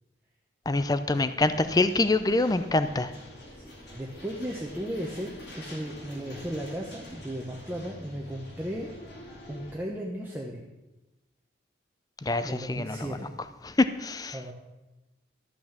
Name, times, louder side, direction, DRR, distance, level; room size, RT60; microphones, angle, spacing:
voice 1, 0.7-3.1 12.2-13.1 13.6-14.4, left 2 dB, 20° left, 12 dB, 0.5 m, -25 dB
sound 1, 1.3-9.7, left 1 dB, 65° left, 3.9 m, -46 dB
voice 2, 3.6-8.9 9.5-10.7 12.4-13.3 14.3-14.5, equal, 10° right, -2 dB, 1.0 m, -36 dB
13.0 x 6.1 x 7.3 m, 1.0 s
head